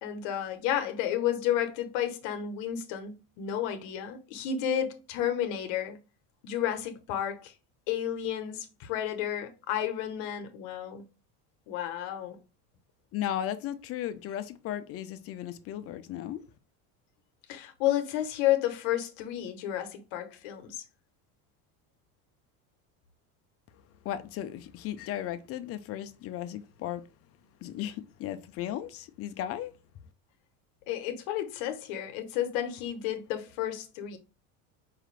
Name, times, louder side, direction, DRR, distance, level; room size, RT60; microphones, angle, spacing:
voice 1, 0.0-6.0 6.4-7.5 7.9-11.0 11.7-12.4 17.5-20.8 30.9-34.2, left 11 dB, 75° left, 0.8 m, -31 dB
voice 2, 13.1-16.4 24.0-27.0 27.6-29.7, left 11 dB, 40° left, 0.4 m, -35 dB
4.8 x 2.5 x 3.2 m
cardioid pair, 140°, 37 cm